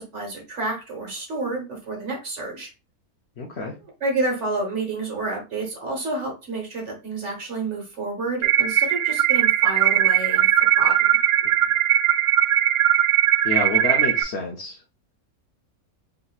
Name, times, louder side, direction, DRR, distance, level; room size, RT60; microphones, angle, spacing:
voice 1, 0.0-2.7 4.0-11.1, right 2 dB, 50° right, 1 dB, 1.5 m, -29 dB
voice 2, 3.4-3.8 11.4-11.5 13.4-14.8, left 2 dB, 55° left, 0 dB, 0.8 m, -28 dB
sound 1, 8.4-14.2, right 11 dB, 70° right, 0.8 m, -19 dB
5.0 x 2.9 x 2.3 m, 0.30 s
omnidirectional pair, 1.6 m